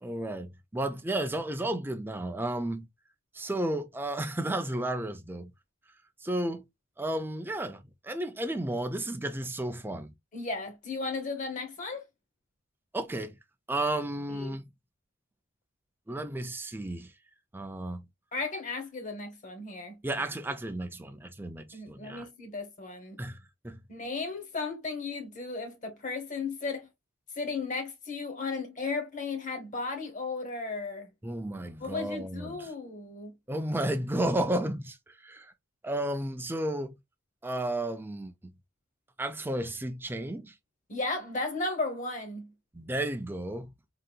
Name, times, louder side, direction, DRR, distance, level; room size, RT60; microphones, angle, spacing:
voice 1, 0.0-2.9 3.3-5.5 6.2-6.6 7.0-10.1 12.9-13.4 13.7-14.7 16.1-17.1 17.5-18.1 20.0-22.3 23.2-23.4 23.6-23.8 31.2-32.7 33.5-35.5 35.8-37.0 37.4-38.5 39.2-40.5 42.7-43.7, right 1 dB, 10° right, 0.4 m, -33 dB
voice 2, 10.3-12.0 14.3-14.5 18.3-20.0 21.7-23.2 23.9-26.9 27.4-31.1 31.8-33.4 40.9-42.5, left 3 dB, 40° left, 1.1 m, -35 dB
3.9 x 2.6 x 2.2 m
head